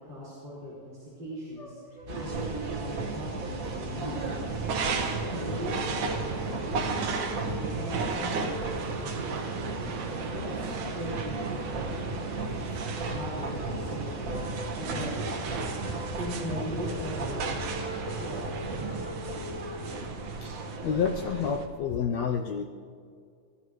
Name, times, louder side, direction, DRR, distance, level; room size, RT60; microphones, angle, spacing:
voice 1, 0.0-5.8 6.0-9.8 10.3-14.4 14.8-15.1 16.2-17.8 18.1-19.0, left 1 dB, 35° right, -10 dB, 5.3 m, -40 dB
sound 1, 1.6-2.4 2.7-3.1 3.9-4.0 5.0-10.2 10.6-11.9 12.2-12.5 12.8-13.3 13.6-14.7 15.0-20.0, left 1 dB, 15° left, 1.7 m, -43 dB
sound 2, 2.1-21.7, right 3 dB, 55° right, 0.9 m, -35 dB
sound 3, 4.5-20.8, right 5 dB, 75° right, 2.7 m, -36 dB
voice 2, 20.8-22.7, left 6 dB, 75° left, 5 dB, 1.6 m, -28 dB
30.0 x 14.5 x 3.1 m, 2.2 s
omnidirectional pair, 3.6 m